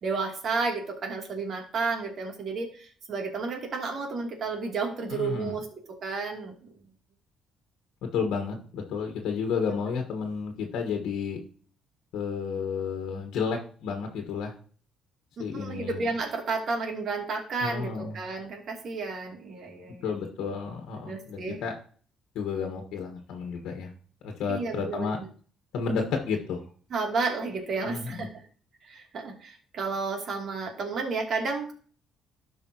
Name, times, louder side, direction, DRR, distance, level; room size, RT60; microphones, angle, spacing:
voice 1, 0.0-5.7 6.0-6.7 15.5-20.1 21.0-21.6 24.5-25.1 26.9-28.3 28.8-31.7, right 4 dB, 55° right, 1 dB, 2.5 m, -32 dB
voice 2, 5.1-5.5 8.0-11.4 12.1-14.5 15.4-15.9 17.6-18.2 20.0-21.7 22.3-23.9 24.2-25.2 25.7-26.6 27.8-28.2, left 5 dB, 80° left, 3 dB, 1.3 m, -31 dB
12.5 x 5.0 x 2.8 m, 0.43 s
cardioid pair, 95°, 0 cm